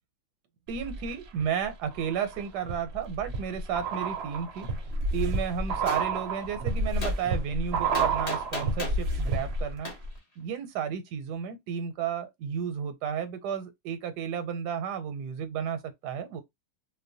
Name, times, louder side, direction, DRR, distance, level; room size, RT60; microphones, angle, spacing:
sound 1, 0.7-1.4 1.9-9.8 10.0-10.1, right 2 dB, 65° right, 0.6 m, -30 dB
voice 1, 0.7-4.7 5.1-9.9 10.4-16.4, right 8 dB, 85° right, 1.2 m, -33 dB
Gunshot gunfire, 5.9-6.0 7.0-7.2 7.9-9.0 9.9-10.0, left 2 dB, 40° left, 0.5 m, -35 dB
2.7 x 2.1 x 2.6 m
omnidirectional pair, 1.7 m